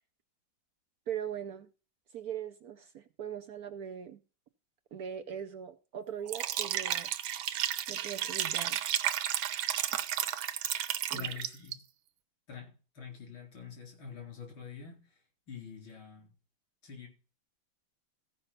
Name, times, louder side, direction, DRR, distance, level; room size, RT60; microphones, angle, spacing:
voice 1, 1.1-1.7 2.1-4.2 4.9-7.1 7.9-8.8 11.1-11.3, right 9 dB, 60° right, 1.0 m, -40 dB
Liquid, 6.3-11.7, right 11 dB, 85° right, 1.5 m, -33 dB
voice 2, 11.1-11.8 12.5-15.2 15.5-16.3 16.8-17.1, left 7 dB, 80° left, 4.8 m, -46 dB
15.0 x 5.5 x 5.6 m
omnidirectional pair, 2.1 m